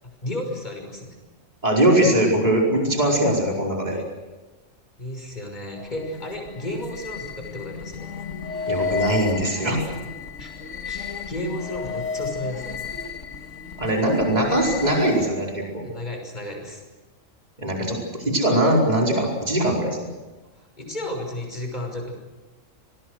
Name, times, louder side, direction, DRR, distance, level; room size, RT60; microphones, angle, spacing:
voice 1, 0.2-1.2 3.9-4.0 5.0-8.1 9.9-10.0 10.4-10.6 10.8-12.9 15.8-16.8 20.6-22.1, left 1 dB, 35° left, 2 dB, 6.0 m, -33 dB
voice 2, 1.6-4.0 8.7-9.8 13.8-15.8 17.6-20.1, right 1 dB, 30° right, -1 dB, 5.0 m, -21 dB
sound 1, 5.7-15.5, left 5 dB, 65° left, 2.0 m, -32 dB
28.5 x 21.5 x 6.5 m, 1.2 s
omnidirectional pair, 1.4 m